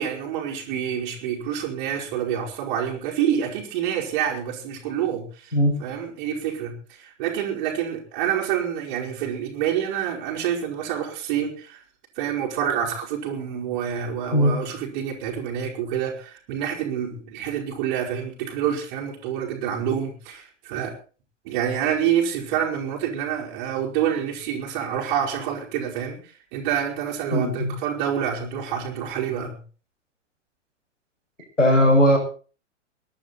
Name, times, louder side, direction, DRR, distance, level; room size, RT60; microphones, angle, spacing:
voice 1, 0.0-11.8 12.2-20.9 21.4-29.6, right 9 dB, 40° right, 0 dB, 4.7 m, -27 dB
voice 2, 27.3-27.7 31.6-32.2, equal, 80° left, 4 dB, 6.4 m, -18 dB
22.0 x 11.5 x 4.1 m, 0.37 s
figure-of-eight pair, 105°, 37 cm